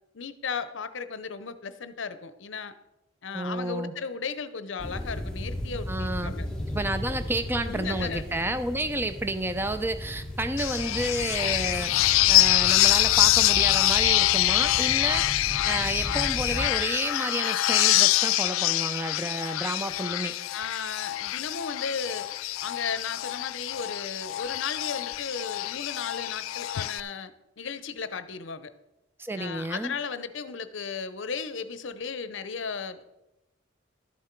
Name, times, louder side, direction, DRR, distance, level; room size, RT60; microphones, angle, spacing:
voice 1, 0.1-2.7 3.2-6.5 7.6-8.2 20.5-22.3 22.6-28.7 29.4-33.0, left 5 dB, 65° left, 13 dB, 0.7 m, -35 dB
voice 2, 3.3-3.9 5.9-6.3 6.7-20.4 29.2-29.9, right 1 dB, 10° right, 10 dB, 0.6 m, -31 dB
sound 1, 4.8-16.7, left 1 dB, 5° left, 1.2 m, -36 dB
sound 2, 10.6-27.0, left 16 dB, 85° left, 0.3 m, -25 dB
12.0 x 7.1 x 4.5 m, 0.95 s
head